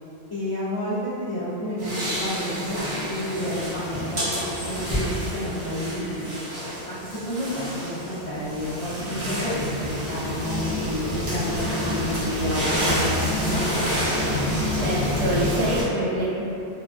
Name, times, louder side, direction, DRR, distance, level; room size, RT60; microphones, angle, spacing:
voice 1, 0.3-6.4 6.9-13.7, left 1 dB, 45° left, -14 dB, 0.4 m, -30 dB
sound 1, 1.8-15.8, equal, 35° right, 0.6 m, -28 dB
voice 2, 14.7-16.4, right 1 dB, 75° right, -5 dB, 0.8 m, -26 dB
2.2 x 2.2 x 2.4 m, 2.8 s
omnidirectional pair, 1.1 m